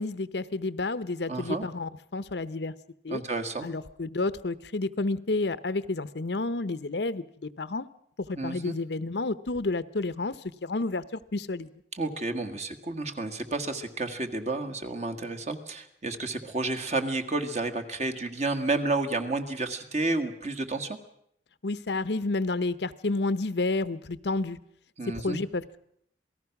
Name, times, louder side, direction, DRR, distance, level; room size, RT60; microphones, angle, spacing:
voice 1, 0.0-2.7 3.0-3.2 3.6-7.9 8.3-10.4 10.6-11.7 21.6-24.6 25.1-25.8, left 3 dB, 70° left, 14 dB, 0.8 m, -30 dB
voice 2, 1.3-1.7 3.1-3.7 8.4-8.8 11.9-21.0 25.0-25.4, right 2 dB, 40° right, 7 dB, 1.8 m, -31 dB
27.5 x 18.5 x 5.9 m, 0.69 s
head